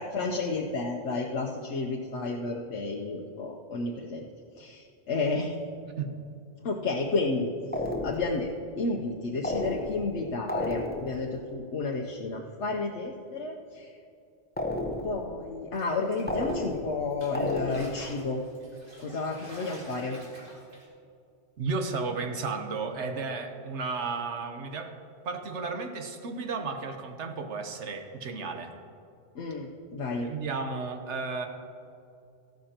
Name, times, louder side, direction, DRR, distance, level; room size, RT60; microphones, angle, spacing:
voice 1, 0.0-4.3 4.6-5.5 6.6-7.5 8.0-8.5 8.8-14.0 15.0-18.4 19.0-20.2 29.3-30.3, left 3 dB, 80° left, -1 dB, 1.1 m, -31 dB
sound 1, 7.7-8.4 9.4-10.2 10.5-11.2 14.6-15.3 16.3-17.0 17.3-18.1, left 1 dB, 10° left, 0.7 m, -32 dB
sound 2, 15.7-16.8 17.1-20.9, equal, 50° right, 2.3 m, -49 dB
voice 2, 21.6-24.9 25.2-28.7 30.2-31.5, right 4 dB, 80° right, 5 dB, 1.3 m, -33 dB
14.5 x 12.0 x 2.9 m, 2.5 s
omnidirectional pair, 1.2 m